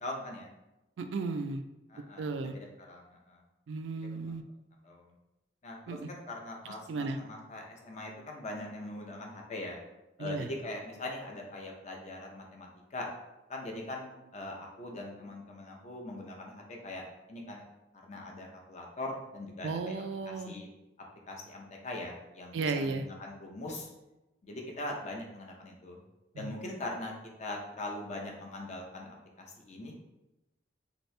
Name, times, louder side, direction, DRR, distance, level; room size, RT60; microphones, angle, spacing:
voice 1, 0.0-0.5 1.9-3.4 4.8-5.0 5.6-9.8 10.2-13.1 13.5-17.6 18.0-20.7 21.3-23.9 24.4-26.0 26.4-27.1 27.4-30.0, left 2 dB, 40° left, 0 dB, 0.6 m, -41 dB
voice 2, 1.0-1.6 2.2-2.6 3.7-4.4 5.9-6.1 6.9-7.2 10.2-10.5 19.6-20.5 22.5-23.1 26.3-26.5, right 3 dB, 90° right, 8 dB, 0.3 m, -34 dB
2.9 x 2.7 x 3.2 m, 0.97 s
head